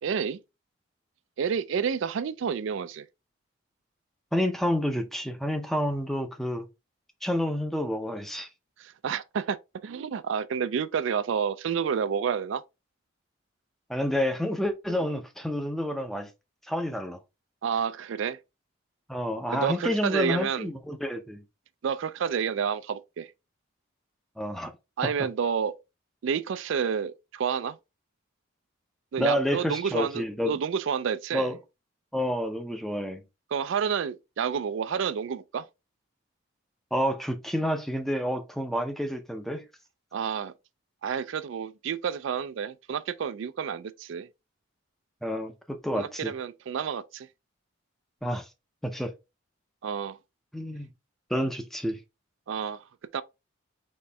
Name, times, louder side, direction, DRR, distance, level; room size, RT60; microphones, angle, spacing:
voice 1, 0.0-0.4 1.4-3.0 8.8-9.6 9.8-12.6 17.6-18.4 19.5-20.7 21.8-23.3 25.0-25.7 26.2-27.8 29.1-31.5 33.5-35.6 40.1-40.5 41.0-44.3 45.9-47.3 49.8-50.2 52.5-52.8 53.1-53.2, right 7 dB, 70° right, 0.4 m, -29 dB
voice 2, 4.3-6.7 7.2-8.5 13.9-16.3 16.7-17.2 19.1-21.4 24.4-24.7 25.0-25.1 29.2-30.6 31.3-31.6 32.1-33.2 36.9-39.6 45.2-46.3 48.2-48.5 48.8-49.1 50.5-50.9 51.3-52.0, equal, ahead, 0.5 m, -29 dB
4.2 x 3.1 x 3.4 m
head